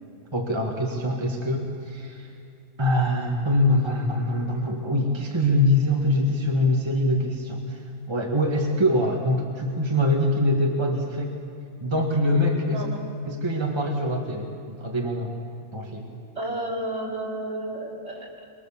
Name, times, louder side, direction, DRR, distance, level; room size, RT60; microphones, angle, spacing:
voice 1, 0.3-2.3 2.8-11.4 11.8-12.8 13.2-15.4 15.7-16.1, left 1 dB, 20° right, 0 dB, 1.8 m, -24 dB
voice 2, 12.7-13.0 16.3-18.3, right 1 dB, 55° right, -4 dB, 4.4 m, -31 dB
23.5 x 23.0 x 7.3 m, 2.6 s
omnidirectional pair, 1.3 m